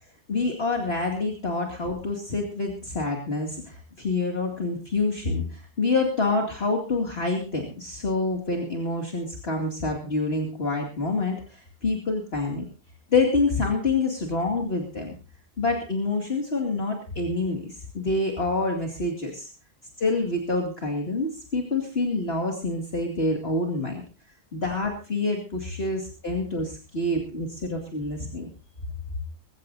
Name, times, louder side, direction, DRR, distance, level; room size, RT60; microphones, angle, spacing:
voice 1, 0.3-12.6 13.1-15.1 15.6-19.5 20.0-24.0 24.5-28.5, left 3 dB, 40° left, 1 dB, 2.5 m, -27 dB
21.5 x 16.0 x 2.7 m, 0.36 s
omnidirectional pair, 1.6 m